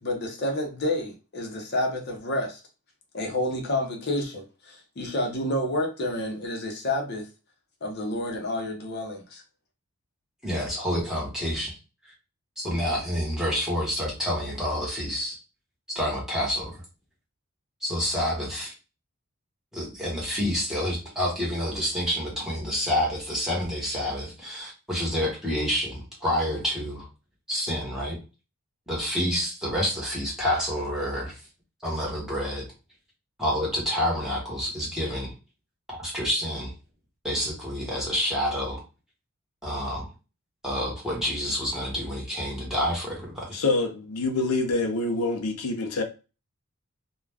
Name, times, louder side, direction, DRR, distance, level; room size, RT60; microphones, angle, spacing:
voice 1, 0.0-2.6 3.1-7.3 7.8-9.4, left 1 dB, 50° left, 0.6 m, -29 dB
voice 2, 10.4-11.7 12.0-12.1 12.6-15.4 15.9-16.8 17.8-18.7 19.7-27.1 27.5-28.2 28.9-31.4 31.8-32.6 33.4-35.3 35.9-36.7 37.2-38.8 39.6-40.1 40.6-43.6, equal, ahead, 1.0 m, -28 dB
voice 3, 43.5-46.0, left 3 dB, 90° left, 0.6 m, -26 dB
2.4 x 2.2 x 3.3 m
head